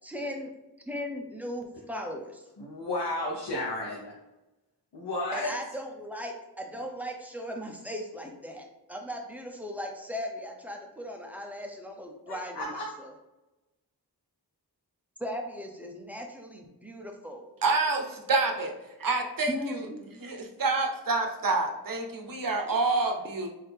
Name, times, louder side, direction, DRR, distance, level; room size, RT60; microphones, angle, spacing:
voice 1, 0.0-0.5 0.9-2.4 5.3-13.1 15.2-17.5 19.5-20.0, equal, 5° right, 1 dB, 0.6 m, -38 dB
voice 2, 2.6-4.1 4.9-5.5 12.3-12.9, left 1 dB, 70° left, -3 dB, 0.8 m, -33 dB
voice 3, 17.6-18.7 19.0-19.9 20.2-23.5, right 3 dB, 55° right, 3 dB, 0.7 m, -28 dB
3.9 x 2.7 x 3.3 m, 1.0 s
cardioid pair, 60°, 41 cm